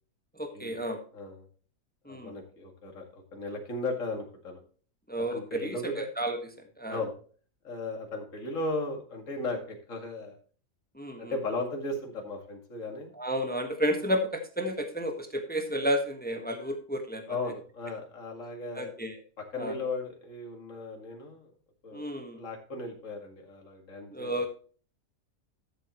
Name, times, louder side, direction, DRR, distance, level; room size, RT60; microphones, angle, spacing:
voice 1, 0.4-1.0 2.0-2.3 5.1-7.0 10.9-11.3 13.1-17.4 18.7-19.1 19.6-19.7 21.9-22.4 24.1-24.5, equal, 5° left, 5 dB, 1.3 m, -32 dB
voice 2, 1.1-1.4 2.1-4.6 5.3-6.1 6.9-7.1 7.6-10.3 11.2-13.1 17.3-18.9 19.4-21.5 21.8-22.0 22.4-24.3, left 2 dB, 60° left, 2 dB, 2.5 m, -36 dB
12.5 x 7.6 x 3.0 m, 0.41 s
omnidirectional pair, 1.5 m